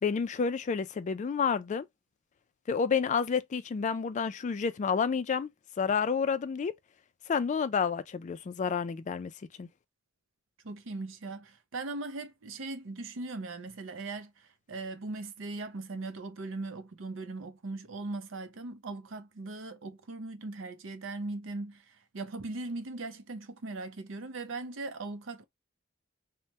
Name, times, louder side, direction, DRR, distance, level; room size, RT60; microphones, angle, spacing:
voice 1, 0.0-1.9 2.7-5.5 5.8-6.7 7.3-9.3 9.6-9.7, left 6 dB, 40° left, 0.3 m, -29 dB
voice 2, 10.6-25.4, right 3 dB, 70° right, 0.6 m, -39 dB
3.2 x 2.1 x 2.7 m
head